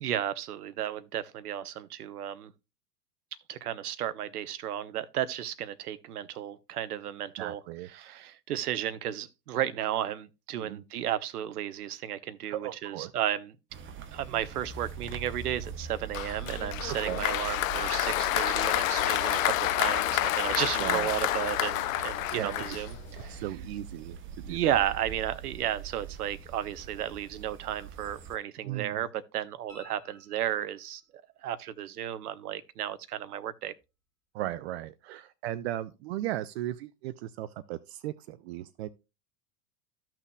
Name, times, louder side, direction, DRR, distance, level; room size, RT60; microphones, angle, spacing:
voice 1, 0.0-2.5 3.5-7.6 7.9-13.5 14.1-23.4 24.4-31.0 31.4-33.7, right 11 dB, 65° right, 0.8 m, -33 dB
voice 2, 7.4-8.2 10.5-10.8 12.5-13.1 16.9-17.2 20.7-21.1 22.3-22.5 23.3-24.2 24.5-24.8 28.6-29.0 34.3-38.9, right 13 dB, 45° right, 0.5 m, -36 dB
sound 1, 13.7-28.4, right 7 dB, 25° right, 0.9 m, -43 dB
Applause, 16.1-23.3, left 14 dB, 55° left, 0.6 m, -29 dB
sound 2, 29.7-31.0 33.8-33.9, left 2 dB, 5° left, 3.7 m, -56 dB
14.0 x 5.9 x 2.3 m
figure-of-eight pair, 85°, 48 cm